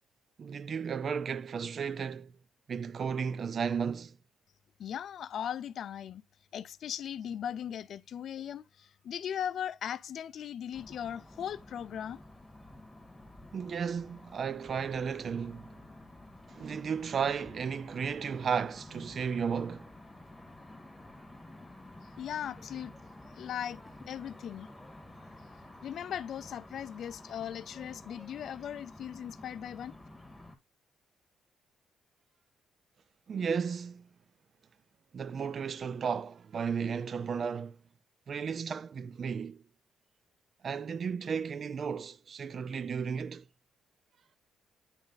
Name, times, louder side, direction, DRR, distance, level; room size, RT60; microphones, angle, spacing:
voice 1, 0.4-2.3 2.7-4.2 13.5-15.7 16.5-19.9 33.3-34.1 35.1-37.8 38.3-39.6 40.6-43.4, right 6 dB, 50° right, 0.4 m, -34 dB
voice 2, 4.8-6.2 6.5-12.2 22.2-22.9 23.4-23.8 24.1-24.7 25.8-29.9, left 9 dB, 65° left, 0.4 m, -38 dB
sound 1, 10.7-30.5, left 1 dB, 10° left, 1.7 m, -51 dB
9.0 x 3.2 x 4.0 m
cardioid pair, 90°, 0 cm